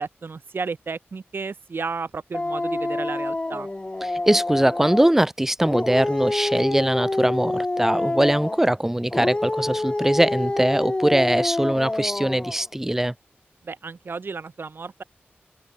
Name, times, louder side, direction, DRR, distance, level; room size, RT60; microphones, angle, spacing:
voice 1, 0.0-3.7 13.6-15.0, right 4 dB, 65° right, 3.0 m, -33 dB
Dog, 2.3-5.1 5.6-8.7 9.1-12.6, left 2 dB, 25° left, 1.8 m, -27 dB
voice 2, 4.0-13.1, right 1 dB, 10° right, 0.8 m, -21 dB
wide cardioid pair, 70°, 4 cm